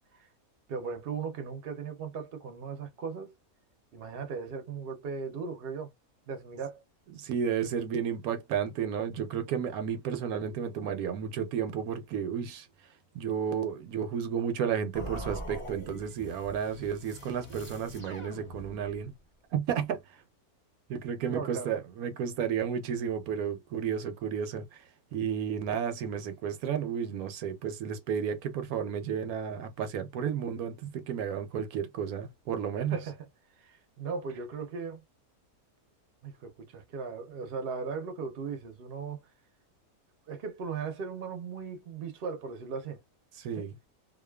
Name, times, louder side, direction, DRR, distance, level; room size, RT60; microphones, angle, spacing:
voice 1, 0.7-3.3 3.9-5.9 6.3-6.8 21.2-21.8 32.7-33.3 33.6-35.0 36.2-39.3 40.3-43.0 43.6-43.7, right 5 dB, 50° right, 0.7 m, -37 dB
voice 2, 7.1-12.7 13.1-19.1 19.5-20.0 20.9-24.7 25.1-33.0 43.4-43.7, right 8 dB, 75° right, 1.0 m, -32 dB
sound 1, 14.9-19.1, equal, 25° left, 0.9 m, -43 dB
2.5 x 2.4 x 2.2 m
omnidirectional pair, 1.6 m